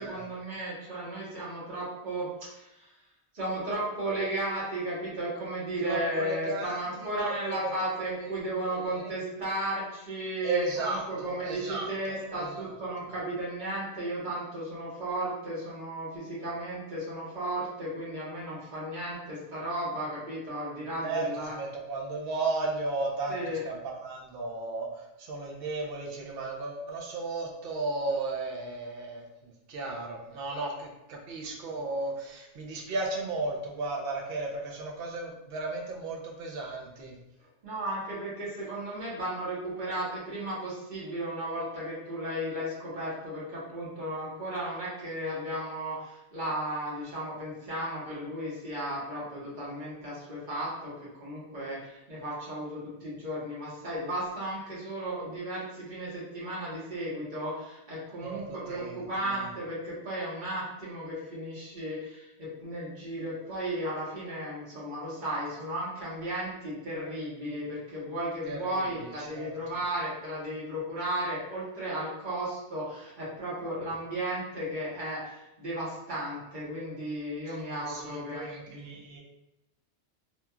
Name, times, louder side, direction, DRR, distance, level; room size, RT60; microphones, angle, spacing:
voice 1, 0.0-2.9 3.3-21.5 23.3-23.6 37.6-50.9 51.2-78.9, right 1 dB, 45° right, -7 dB, 1.1 m, -34 dB
voice 2, 5.8-8.3 8.6-9.1 10.4-12.8 21.0-37.2 58.2-58.4 58.7-59.5 68.4-68.9 69.3-69.7 77.5-79.2, right 3 dB, 60° right, -1 dB, 0.8 m, -35 dB
2.9 x 2.4 x 2.2 m, 0.93 s
omnidirectional pair, 1.2 m